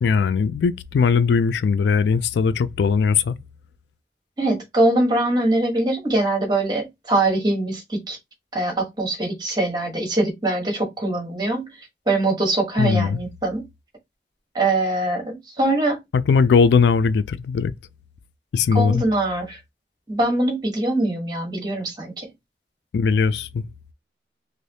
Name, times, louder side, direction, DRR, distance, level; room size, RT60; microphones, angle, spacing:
voice 1, 0.0-3.4 12.8-13.2 16.1-17.7 18.5-19.0 22.9-23.7, left 5 dB, 75° left, 0.3 m, -19 dB
voice 2, 4.4-8.2 8.5-11.7 12.1-13.7 14.5-16.0 18.7-19.6 20.1-22.3, right 2 dB, 25° right, 1.1 m, -22 dB
3.3 x 2.6 x 2.7 m
head